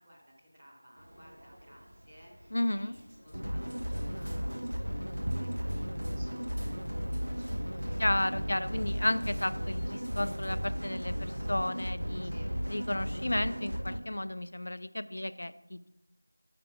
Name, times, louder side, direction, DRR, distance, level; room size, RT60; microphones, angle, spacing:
voice 1, 0.0-6.8 7.0-8.0 12.2-12.5 15.1-15.2, equal, 15° right, -7 dB, 0.7 m, -58 dB
sound 1, 1.0-11.5, equal, 60° right, 0.9 m, -55 dB
voice 2, 2.5-3.0 8.0-12.3 12.7-15.9, left 1 dB, 45° left, 13 dB, 0.3 m, -33 dB
sound 2, 3.3-14.0, equal, 85° right, 1.0 m, -35 dB
sound 3, 5.3-7.1, right 1 dB, 35° right, 0.3 m, -41 dB
5.8 x 5.0 x 5.8 m, 0.90 s
figure-of-eight pair, 175°, 0 cm